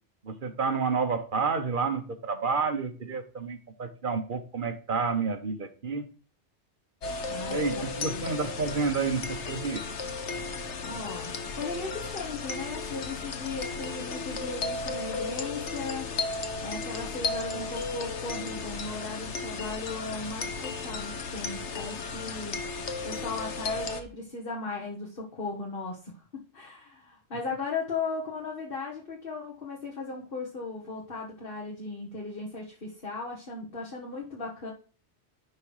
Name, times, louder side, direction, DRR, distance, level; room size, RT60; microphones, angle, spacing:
voice 1, 0.2-6.1 7.5-9.8, right 5 dB, 45° right, 7 dB, 1.1 m, -30 dB
sound 1, 7.0-24.0, left 4 dB, 75° left, 1.3 m, -34 dB
voice 2, 7.3-8.3 10.8-16.1 16.6-22.6 23.0-34.7, left 3 dB, 50° left, -3 dB, 1.8 m, -37 dB
11.0 x 3.7 x 4.8 m, 0.37 s
omnidirectional pair, 1.2 m